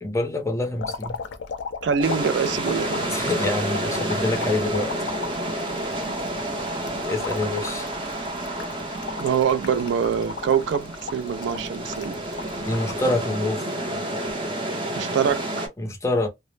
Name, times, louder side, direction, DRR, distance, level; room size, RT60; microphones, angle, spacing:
voice 1, 0.0-1.2 3.1-5.0 7.0-7.9 12.7-13.7 15.8-16.3, left 2 dB, 15° left, 0.5 m, -26 dB
sound 1, 0.8-13.1 13.6-14.3 15.3-15.5, left 5 dB, 85° left, 0.4 m, -36 dB
voice 2, 1.8-3.3 6.1-6.3 9.2-12.2 14.9-15.7, right 7 dB, 80° right, 0.3 m, -25 dB
sound 2, 2.0-15.7, right 1 dB, 30° right, 0.7 m, -30 dB
2.0 x 2.0 x 3.1 m
head